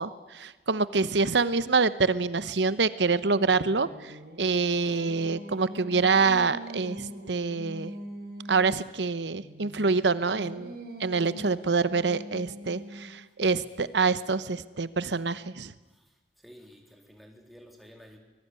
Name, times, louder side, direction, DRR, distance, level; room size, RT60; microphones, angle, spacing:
voice 1, 0.0-7.9 8.5-10.7 11.0-15.7, right 4 dB, 85° right, 15 dB, 1.0 m, -26 dB
Singing, 3.4-8.8 9.4-13.3, equal, 55° right, 4.7 m, -43 dB
voice 2, 15.9-18.2, equal, ahead, 2 dB, 3.6 m, -52 dB
24.0 x 21.0 x 9.8 m, 1.1 s
head